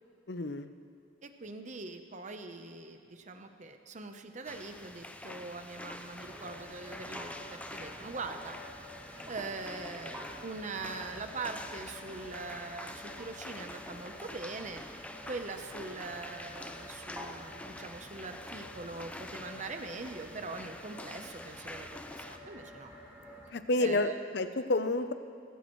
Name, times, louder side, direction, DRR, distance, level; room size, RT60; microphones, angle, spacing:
voice 1, 0.3-0.7 23.5-25.1, left 2 dB, 60° left, 10 dB, 0.7 m, -30 dB
voice 2, 1.2-8.6 9.2-14.8 15.3-22.9 23.8-24.2, right 3 dB, 40° right, 6 dB, 0.9 m, -42 dB
sound 1, 4.5-22.4, left 1 dB, 5° left, 0.5 m, -47 dB
sound 2, 6.2-23.5, equal, 15° right, 2.4 m, -49 dB
18.5 x 17.5 x 3.2 m, 2.4 s
head